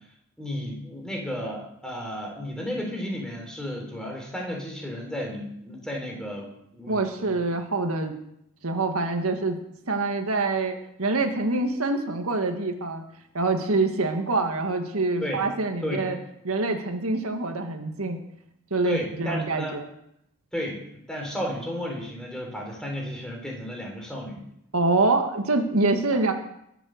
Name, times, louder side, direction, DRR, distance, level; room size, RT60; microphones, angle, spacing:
voice 1, 0.4-6.5 6.7-7.4 15.2-15.4 15.8-16.0 18.8-19.8 20.5-24.4 26.1-26.2, equal, 5° left, 0 dB, 3.7 m, -33 dB
voice 2, 6.9-8.1 8.6-9.6 9.9-13.0 13.3-16.2 16.4-18.2 18.7-19.9 24.7-26.3, right 3 dB, 85° right, 5 dB, 1.8 m, -25 dB
22.0 x 7.9 x 6.5 m, 0.78 s
head